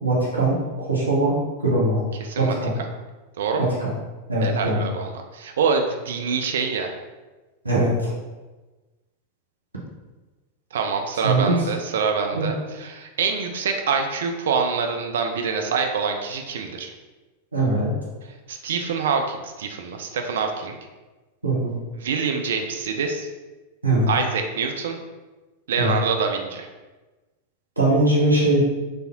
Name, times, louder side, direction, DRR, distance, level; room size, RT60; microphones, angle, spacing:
voice 1, 0.0-1.4 1.6-2.0 2.4-2.7 3.6-3.9 4.3-4.8 7.6-8.1 11.2-11.6 12.3-12.5 17.5-17.9 21.4-21.8 23.8-24.1 25.8-25.9 27.8-28.6, right 2 dB, 80° right, -6 dB, 1.1 m, -21 dB
voice 2, 2.2-2.9 3.4-3.7 4.4-6.9 10.7-16.9 18.5-20.8 22.0-23.3 24.1-25.0 25.7-26.7, right 5 dB, 60° right, 4 dB, 0.4 m, -25 dB
4.2 x 3.3 x 2.9 m, 1.2 s
figure-of-eight pair, 90°, 0 cm